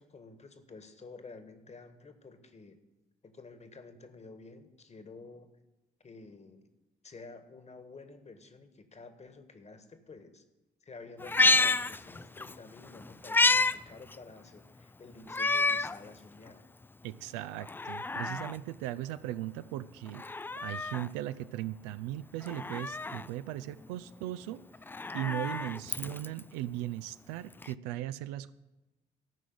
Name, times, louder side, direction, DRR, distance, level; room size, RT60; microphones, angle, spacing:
voice 1, 0.0-2.8 3.2-5.5 6.0-6.7 7.0-10.4 10.8-16.7, left 3 dB, 30° left, 9 dB, 1.6 m, -51 dB
Meow, 11.2-12.5 12.9-13.8 14.1-14.2 15.3-16.0 16.5-16.6 17.6-18.6 20.1-21.1 22.4-23.3 24.7-26.4 27.6-27.7, left 3 dB, 10° left, 0.3 m, -29 dB
voice 2, 17.0-20.2 20.6-24.6 25.1-28.5, right 14 dB, 70° right, 13 dB, 0.5 m, -38 dB
14.0 x 6.1 x 8.0 m, 1.1 s
figure-of-eight pair, 40°, 21 cm